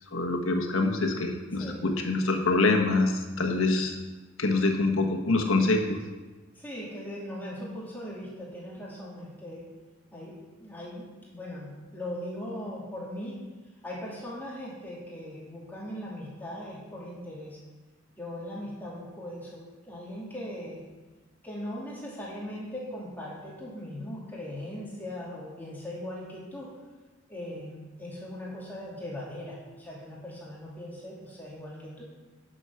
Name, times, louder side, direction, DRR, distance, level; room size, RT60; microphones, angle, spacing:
voice 1, 0.1-4.0 4.4-6.0, left 3 dB, 90° left, 3 dB, 1.3 m, -25 dB
voice 2, 1.5-1.9 6.6-9.7 10.1-13.4 13.8-17.6 18.2-20.8 21.4-26.7 27.3-32.0, left 1 dB, 10° left, -6 dB, 2.4 m, -39 dB
9.5 x 6.3 x 5.7 m, 1.2 s
head